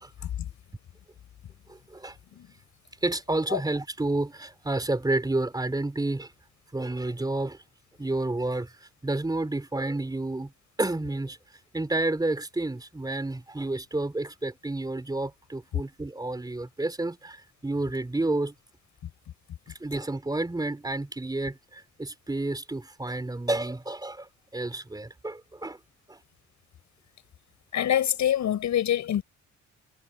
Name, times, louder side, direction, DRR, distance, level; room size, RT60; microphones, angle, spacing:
voice 1, 1.7-2.2 3.0-6.3 6.7-7.6 8.0-10.5 10.8-11.4 11.7-18.5 19.8-25.8 26.1-26.2, right 2 dB, 15° right, 3.6 m, -30 dB
voice 2, 27.7-29.2, left 10 dB, 70° left, 6.4 m, -25 dB
cardioid pair, 90°, 30 cm